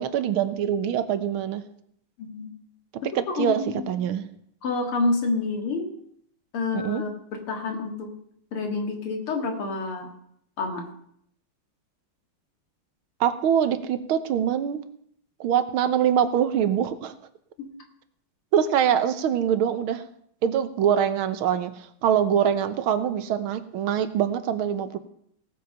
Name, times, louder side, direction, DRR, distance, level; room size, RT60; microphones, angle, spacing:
voice 1, 0.0-1.6 3.2-3.6 3.9-4.3 6.7-7.0 13.2-14.8 15.4-17.1 18.5-20.0 20.4-25.0, right 9 dB, 80° right, 11 dB, 1.7 m, -24 dB
voice 2, 2.2-2.5 3.0-3.9 4.6-5.9 6.5-8.1 8.5-10.1 10.6-10.8 17.6-17.7, left 3 dB, 90° left, 3 dB, 2.9 m, -28 dB
17.5 x 7.8 x 5.5 m, 0.69 s
omnidirectional pair, 2.3 m